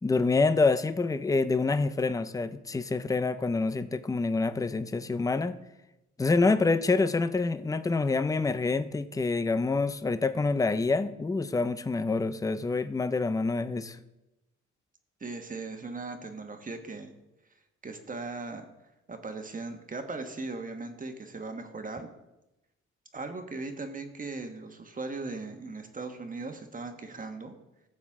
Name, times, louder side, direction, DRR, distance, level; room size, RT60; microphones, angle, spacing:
voice 1, 0.0-5.6 6.2-14.0, left 3 dB, 10° left, 12 dB, 0.5 m, -27 dB
voice 2, 15.2-17.1 17.8-18.7 19.1-22.1 23.1-27.6, right 3 dB, 25° right, 5 dB, 1.4 m, -38 dB
15.0 x 7.1 x 3.7 m, 0.95 s
cardioid pair, 90°, 30 cm